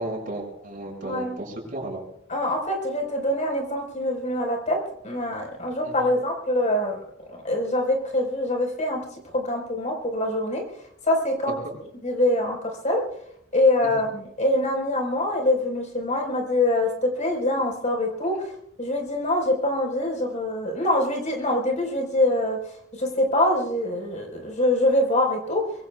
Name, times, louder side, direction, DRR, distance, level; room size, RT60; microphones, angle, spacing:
voice 1, 0.0-2.0 5.8-6.1 11.5-11.8 13.8-13.9, right 1 dB, 45° right, 0 dB, 6.8 m, -34 dB
voice 2, 1.0-1.4 2.3-4.8 5.0-7.0 7.3-9.0 9.3-10.6 11.0-11.5 12.0-12.6 12.8-13.0 13.5-18.5 18.8-22.6 23.0-25.6, left 1 dB, 40° left, 1 dB, 4.6 m, -24 dB
25.5 x 23.0 x 2.4 m, 0.74 s
head